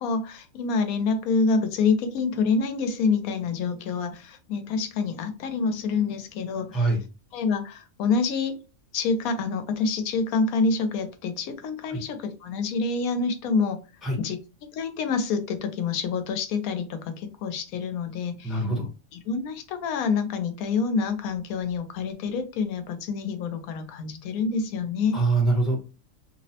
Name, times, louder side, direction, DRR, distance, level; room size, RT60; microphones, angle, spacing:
voice 1, 0.0-6.9 7.3-8.6 8.9-13.8 14.2-14.4 14.7-18.6 19.1-25.2, left 4 dB, 90° left, 8 dB, 1.0 m, -27 dB
voice 2, 18.4-18.9 25.1-25.8, right 2 dB, ahead, -1 dB, 0.5 m, -23 dB
3.0 x 2.0 x 2.7 m, 0.31 s
omnidirectional pair, 1.4 m